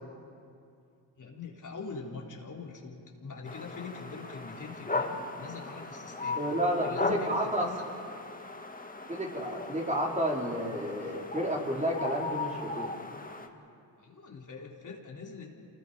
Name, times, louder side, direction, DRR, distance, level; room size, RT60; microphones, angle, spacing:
voice 1, 1.2-6.4 6.8-7.8 14.0-15.6, left 4 dB, 45° left, -1 dB, 3.8 m, -43 dB
sound 1, 3.5-13.5, left 3 dB, 20° left, 2.2 m, -38 dB
voice 2, 6.3-7.7 9.1-12.9, equal, 15° right, -2 dB, 4.5 m, -31 dB
27.5 x 20.0 x 5.4 m, 2.4 s
supercardioid pair, 55°, 44 cm